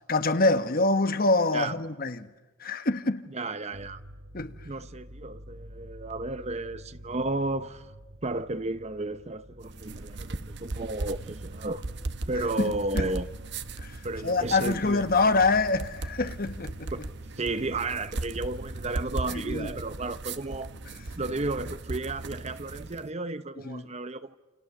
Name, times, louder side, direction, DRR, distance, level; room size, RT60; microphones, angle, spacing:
voice 1, 0.1-2.3 2.6-3.3 4.3-4.5 12.6-13.1 13.8-16.9 19.3-19.7 23.6-23.9, left 3 dB, 45° left, 1.3 m, -26 dB
voice 2, 3.3-4.0 4.6-7.9 8.2-11.8 12.3-13.3 14.0-15.1 16.9-17.0 17.4-20.7 21.2-24.3, right 2 dB, 35° right, 0.9 m, -33 dB
sound 1, 3.7-20.0, equal, 75° right, 4.8 m, -49 dB
sound 2, 9.6-23.1, right 2 dB, 60° right, 0.9 m, -37 dB
29.0 x 29.0 x 7.1 m
head